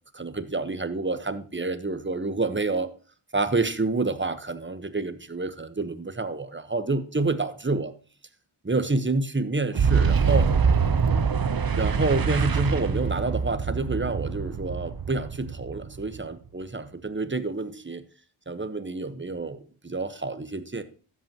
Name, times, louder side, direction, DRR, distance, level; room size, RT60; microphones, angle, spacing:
voice 1, 0.1-2.9 3.3-7.9 8.6-10.5 11.8-18.0 18.5-20.8, right 3 dB, 25° right, 1.1 m, -28 dB
Boom, 9.7-16.3, right 6 dB, 45° right, 0.8 m, -24 dB
13.0 x 8.3 x 2.9 m
wide cardioid pair, 50°, 49 cm